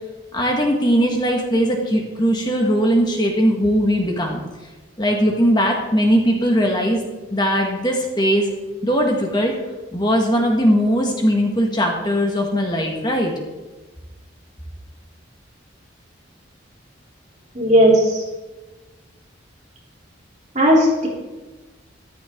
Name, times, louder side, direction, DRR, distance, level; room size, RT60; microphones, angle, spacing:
voice 1, 0.3-4.4 5.0-7.0 7.3-8.5 8.8-9.6 9.9-13.3, equal, 20° left, 1 dB, 2.0 m, -19 dB
voice 2, 17.5-18.2 20.5-21.1, equal, 35° right, -4 dB, 3.9 m, -15 dB
14.0 x 13.5 x 4.0 m, 1.2 s
head